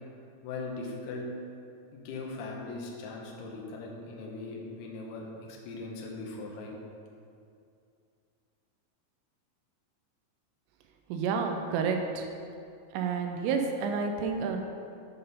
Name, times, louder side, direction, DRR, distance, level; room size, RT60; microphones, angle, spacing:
voice 1, 0.4-1.3 1.9-6.7, left 3 dB, 75° left, -1 dB, 2.4 m, -39 dB
voice 2, 11.1-12.3 12.9-14.6, right 5 dB, 85° right, 4 dB, 3.1 m, -30 dB
9.2 x 4.1 x 5.4 m, 2.5 s
omnidirectional pair, 5.8 m